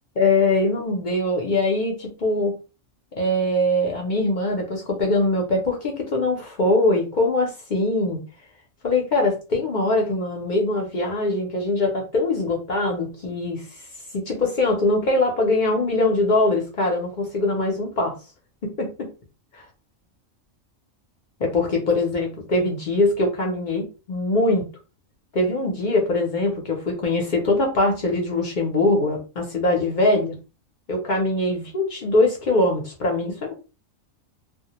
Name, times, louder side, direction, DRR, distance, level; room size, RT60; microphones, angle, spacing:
voice 1, 0.2-2.5 3.2-8.2 8.8-13.7 14.1-18.1 18.8-19.1 19.5-19.7 21.4-24.6 25.3-30.4 30.9-33.5, left 2 dB, 55° left, 0 dB, 0.5 m, -22 dB
2.3 x 2.1 x 2.8 m, 0.32 s
omnidirectional pair, 1.3 m